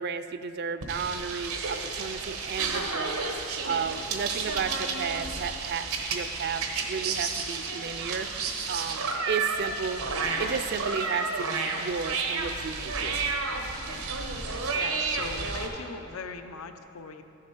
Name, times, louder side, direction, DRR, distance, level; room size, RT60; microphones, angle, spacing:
voice 1, 0.0-3.2 3.6-8.3 8.7-10.0 10.4-13.2, right 6 dB, 50° right, 11 dB, 0.4 m, -33 dB
sound 1, 0.8-15.7, right 4 dB, 90° right, 1.1 m, -31 dB
voice 2, 14.7-17.2, left 5 dB, 85° left, 7 dB, 0.6 m, -40 dB
14.5 x 7.3 x 4.6 m, 3.0 s
head